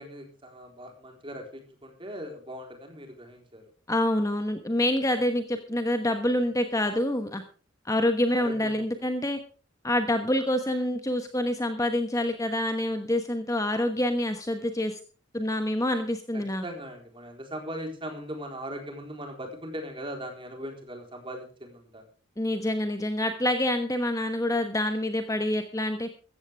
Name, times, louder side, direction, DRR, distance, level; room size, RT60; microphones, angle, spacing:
voice 1, 0.0-3.6 8.3-8.8 16.6-22.0, equal, 25° right, 3 dB, 4.0 m, -39 dB
voice 2, 3.9-7.4 7.8-9.4 9.8-15.0 15.3-16.6 22.4-26.1, left 1 dB, 15° left, 7 dB, 1.2 m, -27 dB
15.5 x 14.5 x 3.5 m, 0.39 s
head